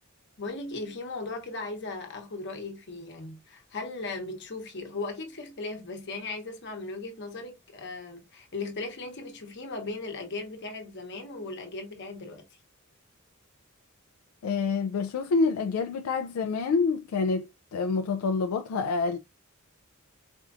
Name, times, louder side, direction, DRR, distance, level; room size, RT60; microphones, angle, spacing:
voice 1, 0.4-12.4, left 3 dB, 55° left, 1.0 m, -37 dB
voice 2, 14.4-19.2, left 4 dB, 85° left, 0.3 m, -27 dB
4.4 x 2.4 x 2.4 m
head